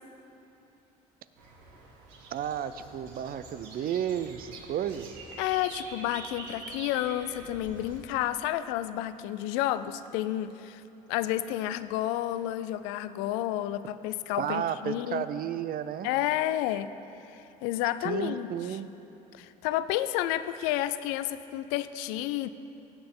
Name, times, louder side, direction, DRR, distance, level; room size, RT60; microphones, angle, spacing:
sound 1, 1.4-8.0, right 3 dB, 80° right, 1.7 m, -46 dB
voice 1, 2.3-5.2 14.4-16.1 18.0-18.9, right 9 dB, 50° right, 13 dB, 0.5 m, -32 dB
voice 2, 5.4-10.8 11.1-15.2 16.0-16.9 17.3-18.8 19.3-22.5, left 13 dB, 80° left, 13 dB, 0.4 m, -31 dB
17.0 x 6.9 x 3.7 m, 3.0 s
hypercardioid pair, 70°, 19 cm